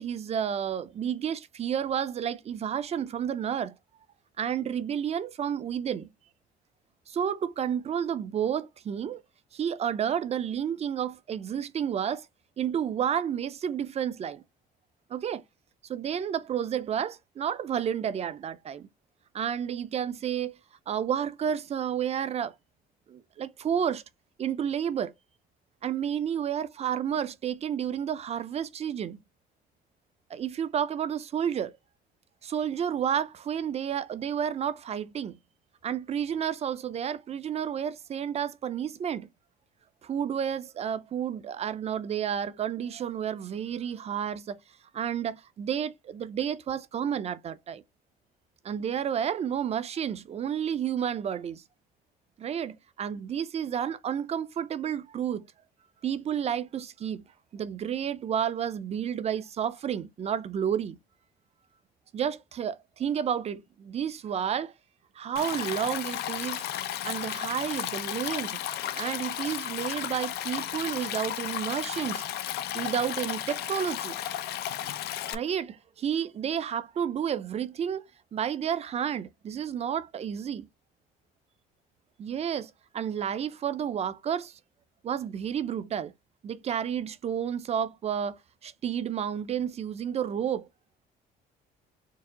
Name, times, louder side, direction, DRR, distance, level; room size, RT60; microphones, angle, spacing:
voice 1, 0.0-3.7 4.4-6.1 7.1-9.2 9.5-12.3 12.6-14.4 15.1-15.4 15.9-18.9 19.3-20.6 20.9-22.5 23.1-24.0 24.4-25.1 25.8-29.2 30.3-31.7 32.4-35.4 35.8-39.3 40.0-44.6 44.9-47.8 48.6-51.6 52.4-55.5 56.0-57.2 57.5-61.0 62.1-64.7 65.2-66.7 67.0-68.6 68.9-72.2 72.7-74.4 75.1-80.7 82.2-84.6 85.0-86.1 86.4-90.7, right 8 dB, 40° right, 0.5 m, -31 dB
Stream, 65.4-75.4, left 11 dB, 75° left, 0.6 m, -34 dB
4.6 x 2.0 x 3.7 m
cardioid pair, 110°, 17 cm